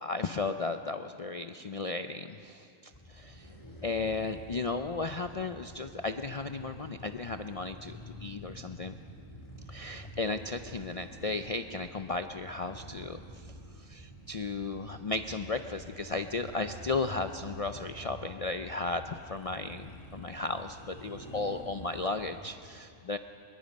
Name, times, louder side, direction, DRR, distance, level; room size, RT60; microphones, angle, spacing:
voice 1, 0.0-2.7 3.1-3.5 3.8-9.0 9.7-23.2, left 3 dB, 65° left, 7 dB, 0.3 m, -35 dB
sound 1, 2.9-22.4, equal, 20° left, 2.4 m, -48 dB
23.5 x 21.5 x 5.2 m, 2.5 s
omnidirectional pair, 1.4 m